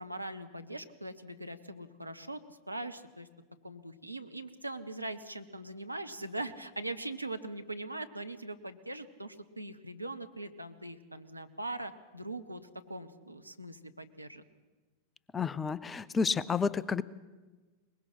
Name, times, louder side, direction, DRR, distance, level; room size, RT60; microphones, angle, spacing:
voice 1, 0.0-3.3 3.6-12.6 12.9-14.4, right 2 dB, 85° right, 8 dB, 1.0 m, -41 dB
voice 2, 15.3-17.0, left 5 dB, 15° left, 20 dB, 0.5 m, -30 dB
22.0 x 20.5 x 5.8 m, 1.3 s
figure-of-eight pair, 90°, 0 cm